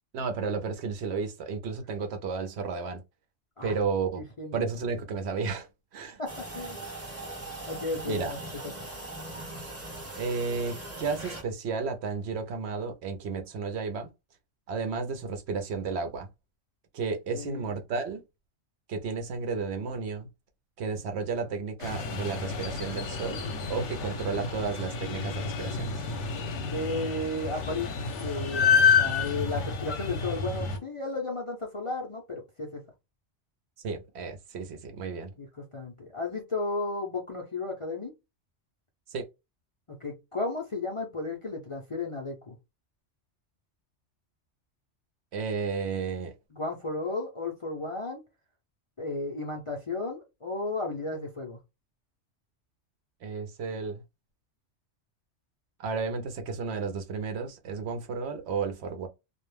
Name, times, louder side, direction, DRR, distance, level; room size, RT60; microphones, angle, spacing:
voice 1, 0.1-3.0 3.6-4.2 4.5-6.2 8.1-8.3 10.1-14.1 14.7-16.3 16.9-18.2 18.9-20.3 20.8-23.4 23.7-26.0 33.8-35.3 39.1-39.3 45.3-46.3 53.2-54.0 55.8-59.1, right 5 dB, 70° right, 0.8 m, -32 dB
voice 2, 4.2-4.7 6.2-6.8 7.7-8.9 17.3-17.8 26.7-27.9 28.2-32.8 35.4-38.1 39.9-42.6 46.5-48.2 49.0-51.6, left 3 dB, 40° left, 0.5 m, -34 dB
sound 1, 6.3-11.4, right 2 dB, 15° right, 0.7 m, -40 dB
sound 2, 21.8-30.8, left 6 dB, 75° left, 1.0 m, -29 dB
2.4 x 2.1 x 3.1 m
omnidirectional pair, 1.2 m